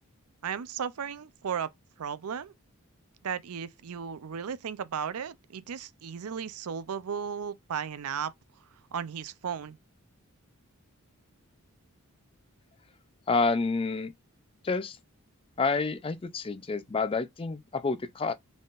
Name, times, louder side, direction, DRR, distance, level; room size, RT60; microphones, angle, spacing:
voice 1, 0.4-1.7 2.0-2.5 3.2-8.3 8.9-9.8, right 7 dB, 80° right, 0.5 m, -35 dB
voice 2, 13.3-14.1 14.6-15.0 15.6-18.3, left 4 dB, 25° left, 0.4 m, -28 dB
4.1 x 3.6 x 2.4 m
head